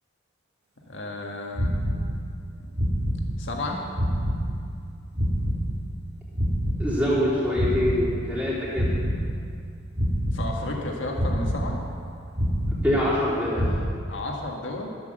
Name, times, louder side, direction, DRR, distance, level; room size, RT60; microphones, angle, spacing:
voice 1, 0.9-1.7 3.4-3.8 10.3-11.8 14.1-14.9, left 2 dB, 70° left, 0 dB, 1.7 m, -32 dB
sound 1, 1.5-2.5 2.7-3.7 3.9-6.1 6.3-8.5 8.7-9.7 9.9-10.9 11.1-12.1 12.3-13.3 13.5-13.8, equal, 55° right, 2.2 m, -27 dB
voice 2, 6.8-8.9 12.8-13.7, left 1 dB, 10° right, -8 dB, 3.4 m, -24 dB
12.0 x 8.4 x 6.6 m, 2.4 s
head